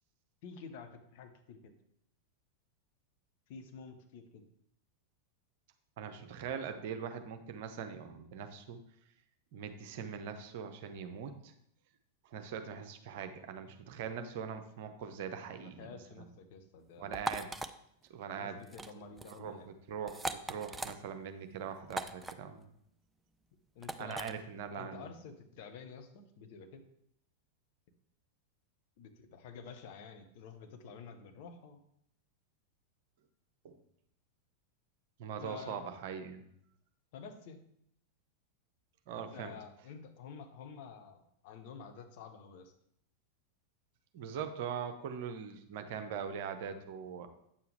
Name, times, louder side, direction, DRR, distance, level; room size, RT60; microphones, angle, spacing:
voice 1, 0.4-1.7 3.5-4.4 15.6-17.2 18.3-19.7 23.7-24.4 24.7-26.8 29.0-31.8 35.4-35.8 37.1-37.6 39.1-42.7, left 5 dB, 50° left, 5 dB, 1.0 m, -50 dB
voice 2, 6.0-8.8 9.5-11.5 12.3-16.3 17.0-17.6 18.1-18.6 19.3-22.7 24.0-25.1 33.6-33.8 35.2-36.4 39.1-39.5 44.1-47.3, right 7 dB, 50° right, 8 dB, 0.8 m, -42 dB
sound 1, 17.1-17.7 18.6-18.9 19.2-19.4 20.1-20.9 21.9-22.3 23.8-24.3, right 2 dB, 10° right, 0.4 m, -39 dB
8.8 x 6.9 x 3.3 m, 0.73 s
figure-of-eight pair, 90°, 0 cm